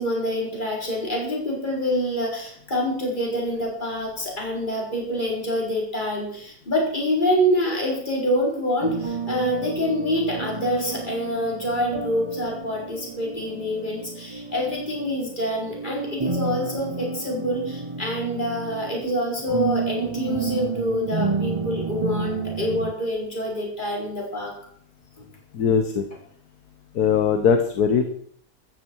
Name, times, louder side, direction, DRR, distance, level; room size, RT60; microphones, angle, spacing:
voice 1, 0.0-24.5, equal, 30° left, -2 dB, 4.7 m, -26 dB
sound 1, 8.8-22.9, right 4 dB, 45° right, 0.4 m, -31 dB
voice 2, 25.5-26.0 26.9-28.1, left 6 dB, 70° left, 8 dB, 1.6 m, -20 dB
14.5 x 14.0 x 4.7 m, 0.62 s
omnidirectional pair, 1.8 m